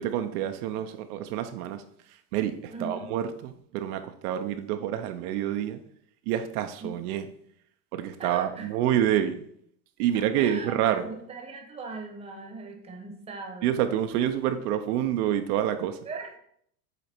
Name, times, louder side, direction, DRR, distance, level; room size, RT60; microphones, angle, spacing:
voice 1, 0.0-1.8 2.3-5.8 6.3-7.3 7.9-9.5 10.0-11.1 13.6-16.0, right 10 dB, 70° right, 8 dB, 0.7 m, -27 dB
voice 2, 2.7-3.1 6.8-7.0 8.2-8.8 10.3-13.7 16.0-16.4, right 3 dB, 15° right, 2 dB, 0.9 m, -39 dB
8.2 x 3.3 x 4.4 m, 0.66 s
supercardioid pair, 155°, 47 cm